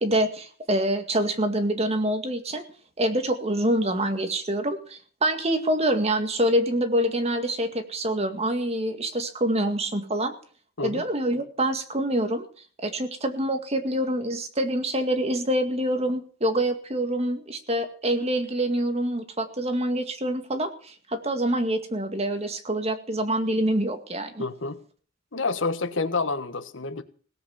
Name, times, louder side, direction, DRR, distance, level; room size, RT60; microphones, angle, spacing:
voice 1, 0.0-2.6 3.0-10.3 10.8-12.5 12.8-24.4, right 1 dB, 35° right, 7 dB, 2.0 m, -26 dB
voice 2, 24.4-24.8 25.3-27.0, left 3 dB, 80° left, 11 dB, 1.4 m, -28 dB
17.5 x 8.3 x 7.2 m, 0.43 s
head